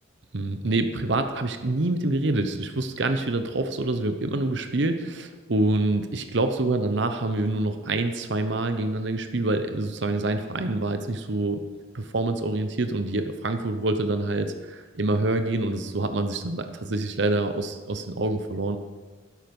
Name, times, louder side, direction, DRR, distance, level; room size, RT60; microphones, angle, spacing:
voice 1, 0.3-11.7 11.9-18.8, right 2 dB, 65° right, 8 dB, 0.9 m, -26 dB
13.0 x 10.5 x 5.4 m, 1.3 s
head